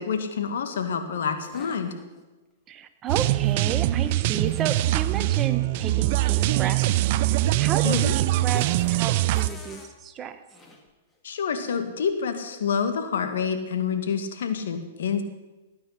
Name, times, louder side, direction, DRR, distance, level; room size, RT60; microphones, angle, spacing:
voice 1, 0.0-1.9 7.8-8.1 11.2-15.2, left 6 dB, 75° left, 7 dB, 2.0 m, -27 dB
sound 1, 1.4-2.2 3.1-3.6 4.2-5.6 6.7-7.0 7.9-9.9 10.5-10.9, left 2 dB, 15° left, 2.0 m, -48 dB
voice 2, 2.7-10.4, right 8 dB, 25° right, 10 dB, 1.1 m, -32 dB
sound 2, 3.1-9.5, right 16 dB, 50° right, 0.5 m, -23 dB
19.0 x 9.4 x 5.9 m, 1.1 s
hypercardioid pair, 135°, 0 cm